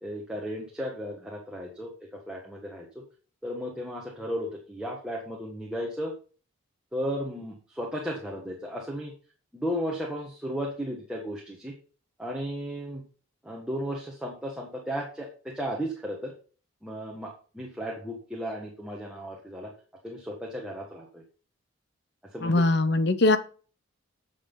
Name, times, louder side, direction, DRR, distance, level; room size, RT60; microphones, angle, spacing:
voice 1, 0.0-1.9 2.3-2.8 3.4-6.1 6.9-9.1 9.5-11.7 12.2-13.0 13.4-16.3 16.8-19.7 20.0-21.2 22.3-22.6, equal, 5° right, -3 dB, 1.5 m, -34 dB
voice 2, 22.4-23.4, left 2 dB, 55° left, 11 dB, 0.9 m, -21 dB
9.7 x 7.2 x 4.0 m, 0.39 s
head